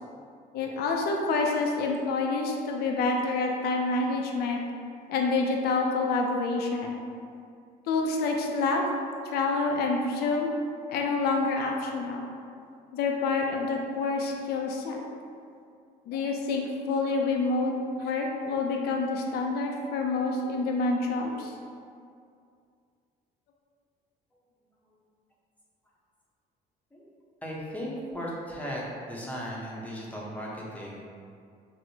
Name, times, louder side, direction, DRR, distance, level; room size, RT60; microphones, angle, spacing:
voice 1, 0.5-4.6 5.1-7.0 7.9-8.8 9.3-10.5 10.9-12.3 12.9-15.0 16.1-21.5, left 3 dB, 70° left, 1 dB, 0.4 m, -27 dB
voice 2, 27.4-28.8 29.1-31.0, equal, 10° left, -5 dB, 0.6 m, -37 dB
4.2 x 2.0 x 2.7 m, 2.3 s
cardioid pair, 110°, 17 cm